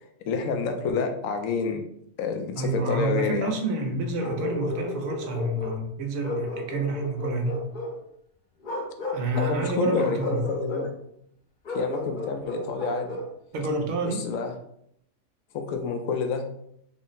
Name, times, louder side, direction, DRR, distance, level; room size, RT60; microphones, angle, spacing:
voice 1, 0.3-1.8 2.2-3.5 9.4-10.9 11.7-13.2 14.0-14.5 15.5-16.5, left 5 dB, 80° left, 5 dB, 1.0 m, -28 dB
voice 2, 2.5-7.6 9.1-10.4 13.5-14.3, right 2 dB, 85° right, 3 dB, 1.1 m, -28 dB
Bark, 4.2-5.8 6.2-8.0 8.6-9.6 9.9-10.9 11.6-13.3, left 1 dB, 45° left, 0.7 m, -33 dB
3.9 x 2.1 x 3.9 m, 0.72 s
omnidirectional pair, 1.4 m